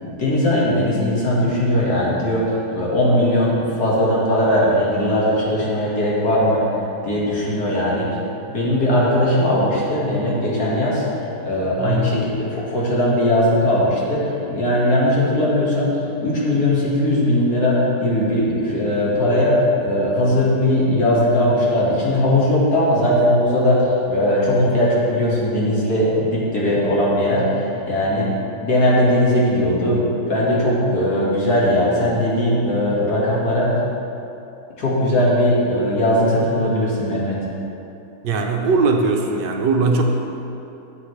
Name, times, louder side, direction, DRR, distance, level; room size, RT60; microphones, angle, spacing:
voice 1, 0.0-2.4 2.7-8.1 8.5-28.3 28.6-33.8 34.8-37.4, left 1 dB, 60° left, -6 dB, 2.3 m, -19 dB
voice 2, 11.7-12.2 38.2-40.0, right 3 dB, 75° right, 2 dB, 1.4 m, -19 dB
12.0 x 7.3 x 3.3 m, 2.8 s
omnidirectional pair, 1.9 m